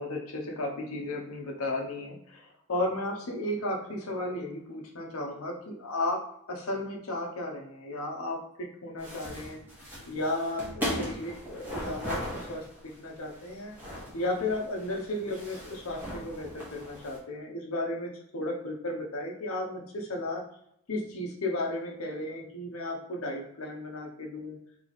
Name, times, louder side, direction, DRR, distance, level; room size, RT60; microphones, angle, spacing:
voice 1, 0.0-6.2 6.5-9.6 10.1-13.8 14.1-20.4 20.9-24.6, left 1 dB, 80° left, 0 dB, 0.9 m, -34 dB
sound 1, 9.0-17.2, equal, 10° right, 1.4 m, -39 dB
3.3 x 3.0 x 4.0 m, 0.74 s
head